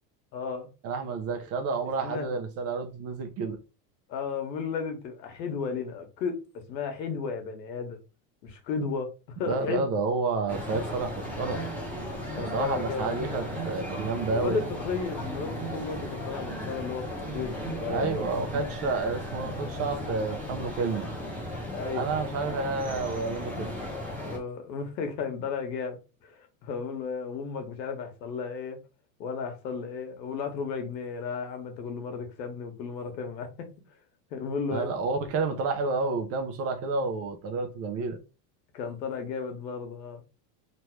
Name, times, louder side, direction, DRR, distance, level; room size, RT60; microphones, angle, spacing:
voice 1, 0.3-0.7 1.8-2.3 4.1-8.0 8.4-9.9 12.4-13.2 14.3-18.3 21.7-22.2 22.5-22.6 24.3-28.8 29.2-33.7 34.3-34.9 38.7-40.2, left 5 dB, 90° left, 1.4 m, -34 dB
voice 2, 0.8-3.6 9.5-11.6 12.4-14.6 17.9-21.1 21.9-23.7 34.7-38.2, right 4 dB, 30° right, 0.5 m, -30 dB
sound 1, 10.5-24.4, left 1 dB, 5° left, 0.8 m, -36 dB
sound 2, 11.2-19.3, right 7 dB, 45° right, 1.0 m, -43 dB
3.3 x 2.5 x 4.5 m
supercardioid pair, 145°, 50 cm